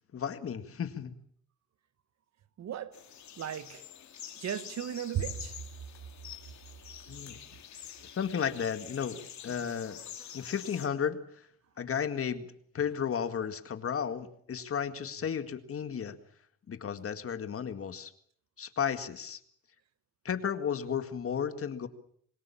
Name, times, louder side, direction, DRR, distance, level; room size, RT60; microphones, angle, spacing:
voice 1, 0.1-1.1 7.1-7.3 8.1-10.0 10.3-11.2 11.8-12.5 12.7-16.1 16.7-18.1 18.6-19.4 20.2-21.9, left 7 dB, 50° left, 2.0 m, -33 dB
voice 2, 2.6-3.0 3.4-3.8 4.4-5.6, right 9 dB, 60° right, 1.5 m, -35 dB
sound 1, 2.9-10.9, left 9 dB, 65° left, 3.0 m, -47 dB
26.0 x 20.5 x 7.2 m
cardioid pair, 90°, 30 cm